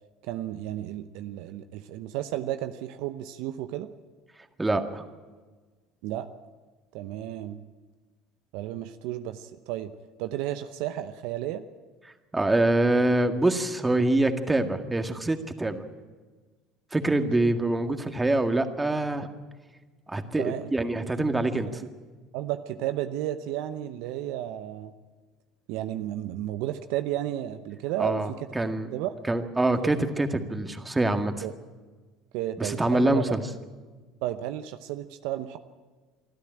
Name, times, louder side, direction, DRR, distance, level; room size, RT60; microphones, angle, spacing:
voice 1, 0.2-3.9 6.0-6.3 6.9-7.6 8.5-9.9 10.2-11.6 20.4-20.7 21.2-21.3 21.5-21.6 22.3-24.9 25.7-28.5 28.9-29.2 31.4-31.6 32.3-33.3 34.2-35.6, right 13 dB, 70° right, 10 dB, 0.8 m, -33 dB
voice 2, 4.6-5.0 12.3-15.8 16.9-19.3 20.1-21.8 28.0-28.9 29.3-31.4 32.6-33.4, right 2 dB, 15° right, 7 dB, 1.9 m, -25 dB
24.5 x 13.0 x 8.9 m, 1.4 s
hypercardioid pair, 70°, 0 cm